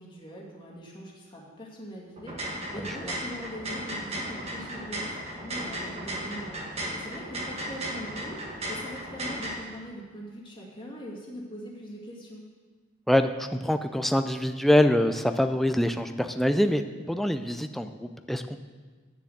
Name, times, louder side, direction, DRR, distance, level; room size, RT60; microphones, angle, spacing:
voice 1, 0.0-2.4 2.7-6.6 6.9-12.4, equal, 25° left, -3 dB, 2.1 m, -42 dB
sound 1, 2.2-9.5, right 1 dB, 30° right, 1.7 m, -35 dB
voice 2, 2.8-3.1 13.1-18.6, left 1 dB, ahead, 8 dB, 0.4 m, -25 dB
10.0 x 6.9 x 7.8 m, 1.5 s
head